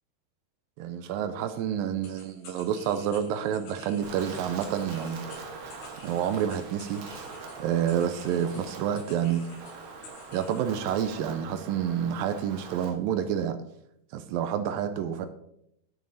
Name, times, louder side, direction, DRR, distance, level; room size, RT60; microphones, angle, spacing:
voice 1, 0.8-5.2 6.0-7.0 7.6-9.6 10.3-13.6 14.1-15.3, right 9 dB, 85° right, 10 dB, 2.0 m, -29 dB
sound 1, 2.0-10.7, left 2 dB, 80° left, 5.2 m, -50 dB
Wind, 4.0-12.9, right 4 dB, 60° right, 3.4 m, -43 dB
11.0 x 9.3 x 4.1 m, 0.75 s
omnidirectional pair, 4.7 m